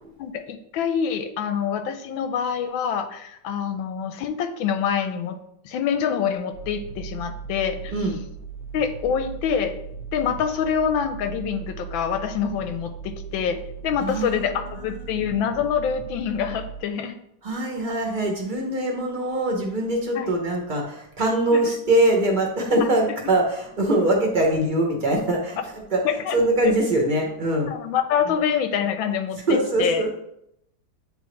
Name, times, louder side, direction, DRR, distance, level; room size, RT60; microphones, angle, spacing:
voice 1, 0.2-5.4 5.6-7.9 8.7-9.7 10.1-17.2 20.2-20.3 21.5-21.7 26.0-26.7 27.6-30.0, left 7 dB, 85° left, 8 dB, 1.4 m, -26 dB
sound 1, 6.5-16.8, right 6 dB, 35° left, 1.0 m, -38 dB
voice 2, 14.0-15.0 17.4-26.0 26.3-27.7 28.2-28.3 29.5-30.1, right 1 dB, 30° right, 0 dB, 0.9 m, -23 dB
8.7 x 3.7 x 3.1 m, 0.76 s
omnidirectional pair, 2.1 m